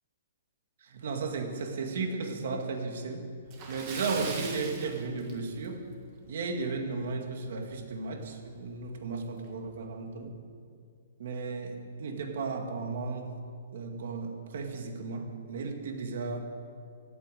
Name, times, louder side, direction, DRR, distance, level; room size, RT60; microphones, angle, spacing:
voice 1, 0.8-3.3 3.7-5.8 6.3-10.3 11.2-13.3 13.7-16.4, right 4 dB, 50° right, 4 dB, 1.9 m, -34 dB
Splash splatter, 3.5-5.8 6.2-6.3 6.8-6.9 8.3-8.4 8.7-8.8 9.4-9.7, right 4 dB, 20° right, 1.8 m, -40 dB
15.5 x 8.6 x 9.2 m, 2.2 s
hypercardioid pair, 180°, 0 cm